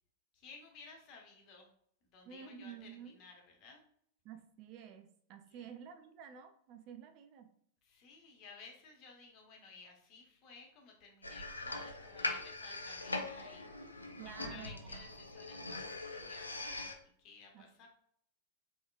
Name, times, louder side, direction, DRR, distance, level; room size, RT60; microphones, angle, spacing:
voice 1, 0.3-1.7 2.1-3.8 5.5-5.7 7.8-17.9, left 4 dB, 40° left, 1 dB, 1.1 m, -56 dB
voice 2, 2.3-3.2 4.2-7.5 14.2-15.0 17.5-17.6, right 8 dB, 40° right, 7 dB, 0.4 m, -51 dB
sound 1, 11.2-16.9, left 2 dB, 80° left, 0.5 m, -42 dB
3.8 x 3.6 x 2.4 m, 0.66 s
figure-of-eight pair, 90°, 0 cm